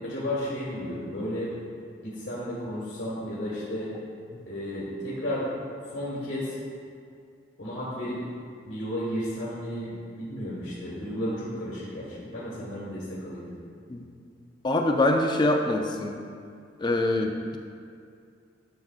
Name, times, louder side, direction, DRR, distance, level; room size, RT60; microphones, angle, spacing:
voice 1, 0.0-1.5 2.0-3.9 4.5-5.5 5.9-6.6 7.6-8.2 8.7-13.6, equal, 85° left, -8 dB, 1.7 m, -33 dB
voice 2, 14.6-16.2 16.8-17.6, left 1 dB, 25° left, 3 dB, 0.4 m, -24 dB
11.0 x 6.3 x 2.4 m, 2.3 s
head